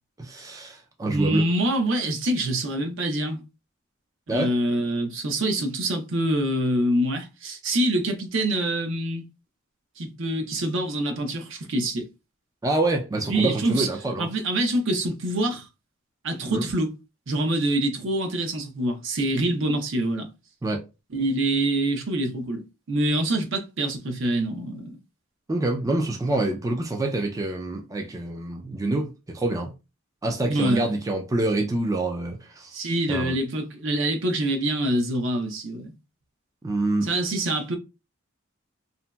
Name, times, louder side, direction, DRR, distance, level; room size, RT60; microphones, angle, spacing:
voice 1, 0.2-1.4 4.3-4.5 12.6-14.3 16.5-16.7 20.6-20.8 25.5-29.7 30.2-32.8 33.1-33.4 36.6-37.1, right 2 dB, 15° right, 0.3 m, -26 dB
voice 2, 1.1-3.4 4.3-9.2 10.0-12.1 13.3-13.9 14.2-15.7 16.2-16.9 17.3-20.3 21.1-25.0 30.5-30.9 32.7-35.9 37.0-37.8, right 1 dB, 65° right, 0.6 m, -25 dB
2.8 x 2.7 x 2.2 m
head